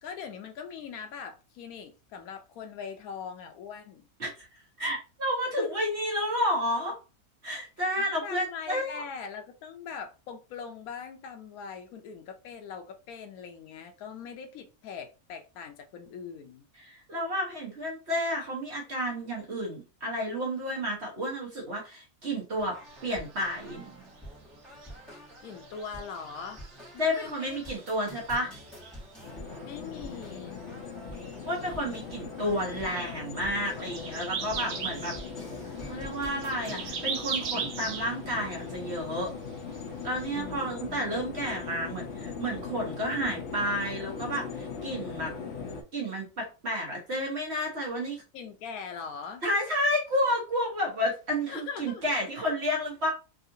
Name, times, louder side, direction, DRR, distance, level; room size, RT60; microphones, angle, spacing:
voice 1, 0.0-4.1 5.6-5.7 8.0-16.7 25.1-26.6 26.9-27.6 28.1-28.5 29.6-30.6 40.3-41.2 48.3-49.5 51.5-52.0 52.4-52.5, left 6 dB, 80° left, 1.1 m, -41 dB
voice 2, 4.8-7.0 7.4-9.0 16.8-23.8 27.0-28.5 31.5-35.2 35.8-39.3 40.0-45.3 45.9-48.2 49.4-53.1, equal, 50° right, 1.2 m, -31 dB
sound 1, 22.6-36.9, equal, ahead, 1.2 m, -48 dB
sound 2, 22.9-40.4, right 6 dB, 80° right, 1.2 m, -41 dB
sound 3, 29.2-45.8, left 5 dB, 60° left, 0.8 m, -40 dB
3.6 x 2.4 x 2.6 m
omnidirectional pair, 1.5 m